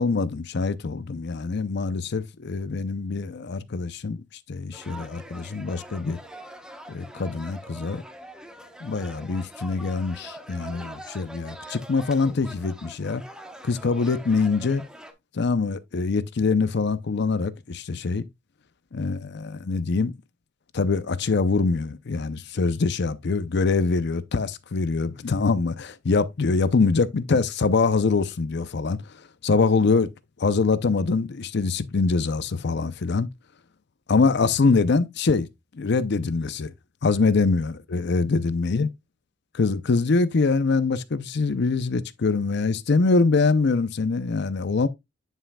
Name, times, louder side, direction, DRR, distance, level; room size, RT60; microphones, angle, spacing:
voice 1, 0.0-4.2 4.5-6.2 6.9-8.0 8.8-13.2 13.6-14.8 15.3-18.3 18.9-20.1 20.7-29.0 29.4-30.1 30.4-33.3 34.1-35.5 35.7-36.7 37.0-38.9 39.5-44.9, left 4 dB, 60° left, 0.6 m, -24 dB
sound 1, 4.7-15.1, right 1 dB, 5° right, 1.0 m, -43 dB
9.8 x 5.6 x 2.3 m
head